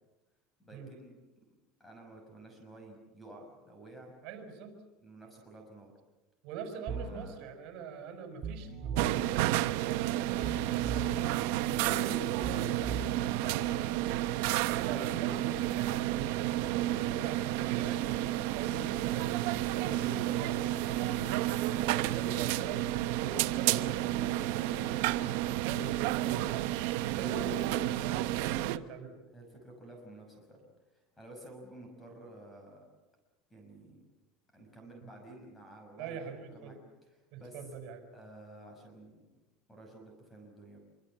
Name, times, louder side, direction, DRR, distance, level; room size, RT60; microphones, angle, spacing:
voice 1, 0.6-1.1 1.8-4.1 5.0-5.9 7.0-7.4 13.4-14.3 19.8-21.3 29.3-30.6 30.9-32.8 33.5-34.0 34.5-36.8 37.4-37.6 38.1-39.2 39.7-40.8, right 1 dB, 10° left, 3 dB, 5.8 m, -51 dB
voice 2, 4.2-4.8 6.4-13.3 14.7-20.6 20.9-25.3 25.6-26.6 27.1-29.2 36.0-36.8 37.3-38.1, right 5 dB, 55° right, 6 dB, 5.7 m, -44 dB
sound 1, 6.9-7.2 8.4-9.2 10.4-11.2 12.4-13.2, right 5 dB, 40° right, 2.0 m, -38 dB
sound 2, 9.0-28.8, right 15 dB, 75° right, 0.9 m, -31 dB
26.5 x 24.5 x 7.5 m, 1.1 s
cardioid pair, 155°, 0 cm